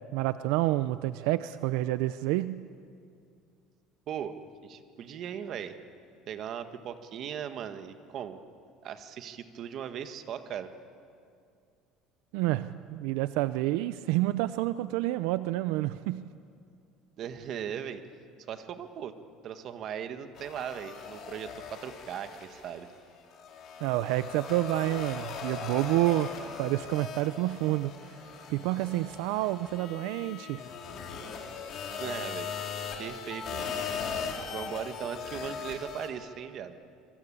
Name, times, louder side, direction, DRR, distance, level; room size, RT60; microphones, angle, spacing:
voice 1, 0.1-2.7 12.3-16.3 23.8-27.9 28.5-30.7, right 16 dB, 80° right, 13 dB, 0.6 m, -29 dB
voice 2, 4.6-5.8 6.3-8.4 8.8-10.7 17.2-18.0 18.5-19.1 19.4-22.9 32.0-32.5 33.0-33.8 34.5-36.7, right 8 dB, 45° right, 9 dB, 1.6 m, -38 dB
sound 1, 20.4-22.9 23.3-36.1, left 6 dB, 45° left, 3.8 m, -39 dB
26.0 x 23.5 x 8.7 m, 2.4 s
cardioid pair, 155°, 0 cm